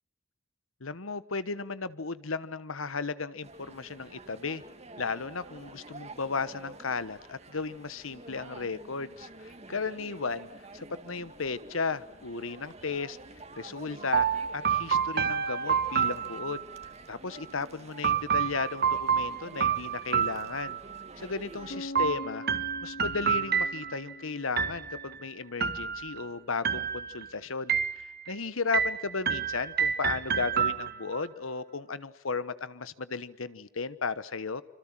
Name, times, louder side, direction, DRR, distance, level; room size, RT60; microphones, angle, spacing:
voice 1, 0.8-4.6 5.0-10.5 10.7-13.2 13.6-14.3 14.5-16.6 17.1-20.8 21.2-34.6, left 4 dB, 80° left, 15 dB, 1.2 m, -35 dB
sound 1, 3.4-21.8, right 2 dB, 30° right, 2.2 m, -49 dB
sound 2, 14.1-16.9 18.0-21.0 22.0-24.1 24.6-25.2 25.6-26.3 26.6-27.3 27.7-28.3 28.7-31.2, right 7 dB, 50° right, 1.5 m, -29 dB
sound 3, 21.7-25.6, left 1 dB, 65° left, 2.8 m, -44 dB
26.5 x 26.0 x 7.5 m, 0.86 s
head